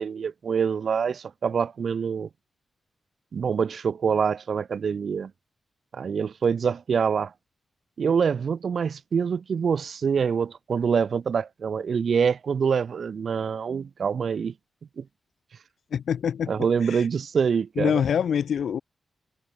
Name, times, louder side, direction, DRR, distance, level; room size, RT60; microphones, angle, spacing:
voice 1, 0.0-2.3 3.3-5.3 5.9-7.3 8.0-14.5 15.0-15.1 16.5-18.0, right 6 dB, 55° right, 3.8 m, -25 dB
voice 2, 15.9-16.5 16.9-17.0 17.8-18.8, left 8 dB, 85° left, 4.4 m, -25 dB
wide cardioid pair, 170°, 0 cm